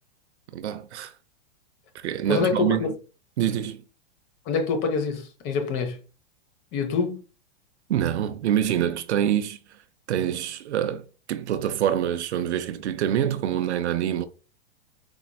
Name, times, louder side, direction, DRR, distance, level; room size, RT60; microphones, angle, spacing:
voice 1, 0.5-1.1 1.9-2.9 3.4-3.8 7.9-9.6 10.1-14.3, right 10 dB, 85° right, 0.6 m, -26 dB
voice 2, 2.3-2.9 4.5-6.0 6.7-7.2, left 5 dB, 35° left, 0.9 m, -26 dB
4.5 x 3.0 x 2.2 m
hypercardioid pair, 135°, 33 cm